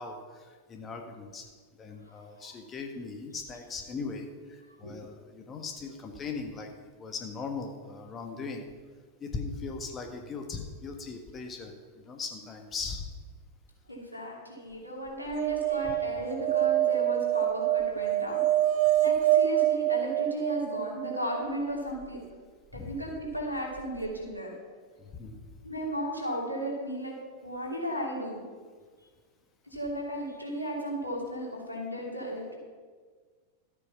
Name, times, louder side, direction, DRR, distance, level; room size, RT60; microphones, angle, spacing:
voice 1, 0.0-1.4 1.8-6.7 7.0-8.6 9.2-13.1 22.7-22.9 25.0-25.4, left 4 dB, 25° left, 4 dB, 1.4 m, -39 dB
voice 2, 13.9-18.4 19.0-22.2 22.7-24.5 25.6-27.1 27.4-28.4 29.6-32.6, equal, 85° left, -2 dB, 2.8 m, -35 dB
sound 1, 15.3-21.5 23.8-23.9 24.1-24.2, right 13 dB, 40° right, 0.5 m, -26 dB
13.0 x 8.4 x 5.8 m, 1.5 s
figure-of-eight pair, 90°, 0 cm